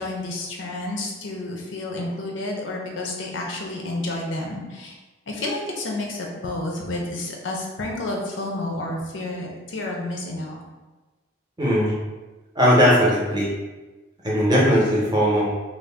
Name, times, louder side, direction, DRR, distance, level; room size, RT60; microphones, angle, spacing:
voice 1, 0.0-5.0 5.3-10.6, left 2 dB, 80° left, -1 dB, 0.6 m, -30 dB
voice 2, 11.6-12.0 12.6-13.5 14.2-15.5, equal, 20° right, -5 dB, 0.6 m, -18 dB
2.6 x 2.0 x 3.3 m, 1.2 s
head